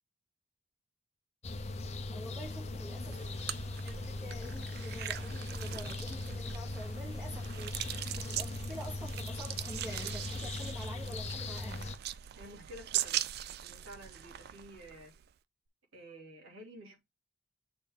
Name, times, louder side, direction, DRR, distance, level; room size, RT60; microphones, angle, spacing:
sound 1, 1.4-12.0, left 2 dB, 30° left, 0.6 m, -39 dB
voice 1, 2.1-3.3 3.8-11.9, equal, 10° right, 1.0 m, -47 dB
sound 2, 3.1-15.3, right 12 dB, 50° right, 0.3 m, -41 dB
voice 2, 12.3-13.3 13.6-15.1 15.9-17.0, equal, 85° right, 2.8 m, -51 dB
6.6 x 4.2 x 3.6 m
head